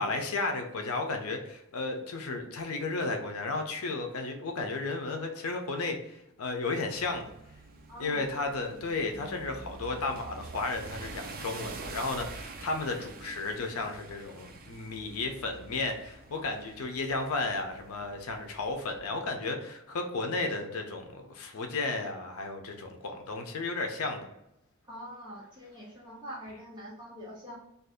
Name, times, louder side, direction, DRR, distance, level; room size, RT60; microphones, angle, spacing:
voice 1, 0.0-6.0 6.4-7.3 8.0-24.3, left 3 dB, 75° left, 4 dB, 0.5 m, -33 dB
sound 1, 6.9-19.0, right 3 dB, 40° right, 0.4 m, -46 dB
voice 2, 7.9-8.2 24.9-27.6, equal, 20° right, -5 dB, 1.0 m, -44 dB
2.6 x 2.3 x 3.5 m, 0.86 s
head